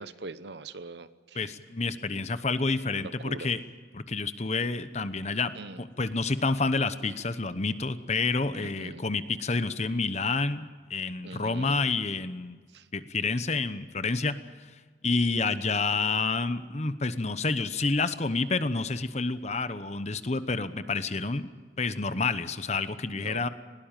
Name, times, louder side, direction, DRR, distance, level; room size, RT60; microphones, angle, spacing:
voice 1, 0.0-1.5 2.9-3.5 5.6-5.8 8.5-9.0 11.2-11.7 12.7-12.9 23.2-23.5, right 3 dB, 65° right, 14 dB, 0.9 m, -42 dB
voice 2, 1.3-3.6 3.9-12.6 12.9-14.4 15.0-21.5 21.8-23.5, left 3 dB, 35° left, 13 dB, 0.9 m, -29 dB
20.5 x 18.0 x 9.0 m, 1.5 s
head